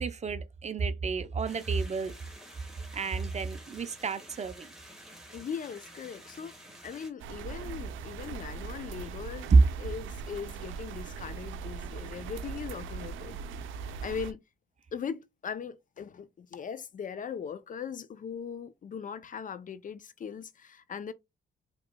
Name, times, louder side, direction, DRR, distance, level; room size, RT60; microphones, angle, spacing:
voice 1, 0.0-2.1 2.9-4.7 9.5-9.7, right 4 dB, 35° right, 0.6 m, -27 dB
sound 1, 1.4-7.1, right 1 dB, ahead, 1.6 m, -50 dB
voice 2, 5.3-9.5 9.8-13.4 14.0-14.4 14.9-21.1, left 7 dB, 40° left, 0.5 m, -39 dB
sound 2, 7.2-14.3, right 6 dB, 80° right, 0.6 m, -40 dB
5.1 x 3.0 x 2.2 m
cardioid pair, 90°, 20 cm